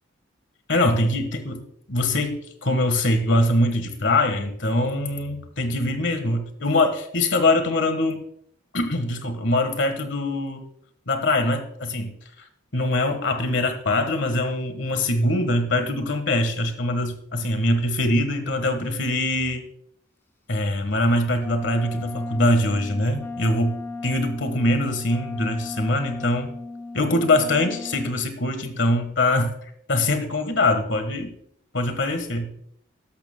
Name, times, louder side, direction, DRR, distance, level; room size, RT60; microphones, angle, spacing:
voice 1, 0.7-1.6 1.9-8.2 8.7-10.6 11.1-12.1 12.7-19.6 20.5-23.8 24.0-26.5 26.9-29.5 29.9-31.3 31.7-32.5, left 1 dB, 65° left, 8 dB, 1.4 m, -23 dB
Wind instrument woodwind instrument, 21.4-28.2, left 3 dB, 10° left, 0.4 m, -35 dB
13.0 x 11.5 x 2.2 m, 0.71 s
head